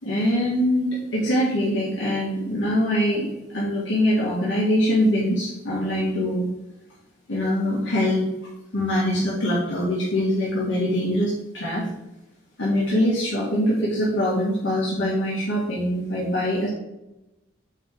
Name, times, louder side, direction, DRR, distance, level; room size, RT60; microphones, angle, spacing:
voice 1, 0.0-6.5 7.3-8.3 8.7-11.9 12.6-16.7, equal, 65° left, -7 dB, 2.0 m, -23 dB
7.4 x 5.5 x 3.7 m, 0.94 s
head